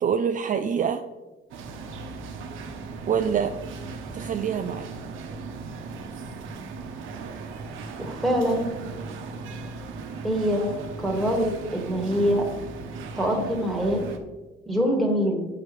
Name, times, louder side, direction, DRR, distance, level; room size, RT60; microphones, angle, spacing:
voice 1, 0.0-1.0 3.1-3.5 4.1-4.9, right 7 dB, 40° right, 7 dB, 0.4 m, -25 dB
sound 1, 1.5-14.2, right 4 dB, 80° right, 0.8 m, -37 dB
voice 2, 8.0-8.8 10.2-10.7 11.0-12.5 13.2-14.0 14.7-15.5, equal, ahead, 1 dB, 1.7 m, -24 dB
7.9 x 5.8 x 3.2 m, 1.2 s
cardioid pair, 90°, 20 cm